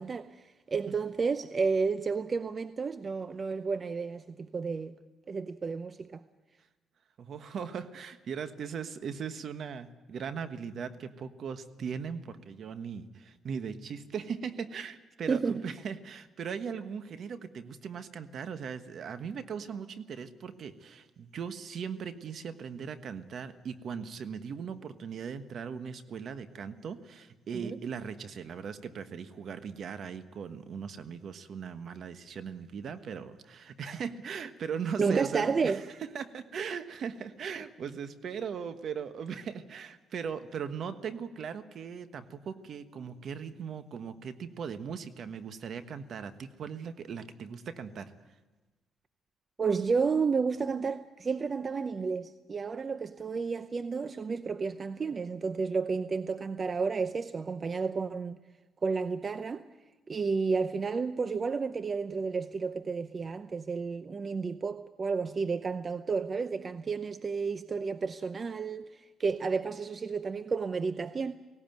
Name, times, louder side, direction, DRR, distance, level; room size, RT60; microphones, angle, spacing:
voice 1, 0.0-5.0 5.3-6.2 15.3-15.6 27.5-27.8 35.0-35.8 49.6-58.4 58.8-59.6 60.1-71.3, right 5 dB, 40° right, 0.7 m, -31 dB
voice 2, 7.2-48.1, right 6 dB, 60° right, 1.3 m, -39 dB
18.0 x 17.5 x 9.2 m
cardioid pair, 90°, 0 cm